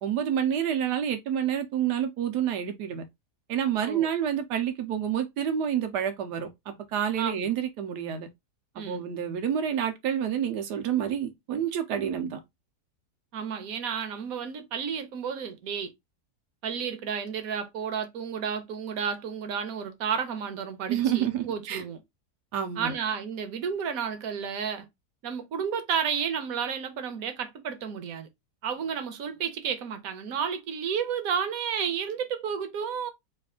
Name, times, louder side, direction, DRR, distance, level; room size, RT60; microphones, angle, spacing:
voice 1, 0.0-3.0 3.5-8.3 8.8-12.4 20.9-21.8 22.5-22.9, right 9 dB, 90° right, 1.3 m, -28 dB
voice 2, 7.2-7.5 8.7-9.0 13.3-15.9 16.6-22.0 22.8-24.9 25.2-28.3 28.6-33.1, right 7 dB, 65° right, 1.1 m, -32 dB
3.3 x 2.4 x 3.6 m
omnidirectional pair, 1.7 m